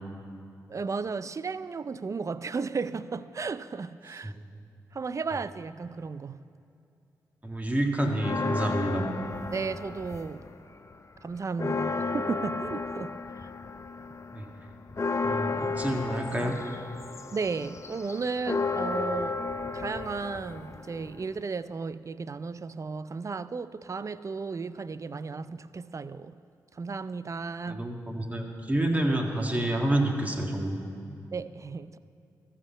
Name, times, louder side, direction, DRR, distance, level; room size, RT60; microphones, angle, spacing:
voice 1, 0.7-4.3 4.9-6.4 9.5-10.5 11.2-13.5 17.3-19.4 19.7-26.4 26.7-27.9 31.3-32.0, right 4 dB, 40° right, 0.4 m, -34 dB
voice 2, 7.4-9.1 14.3-14.5 15.2-16.5 27.7-30.8, right 1 dB, 20° right, 1.8 m, -28 dB
sound 1, 8.2-10.5 10.9-21.4, left 4 dB, 35° left, 0.6 m, -33 dB
13.5 x 5.7 x 7.2 m
supercardioid pair, 40°, 8 cm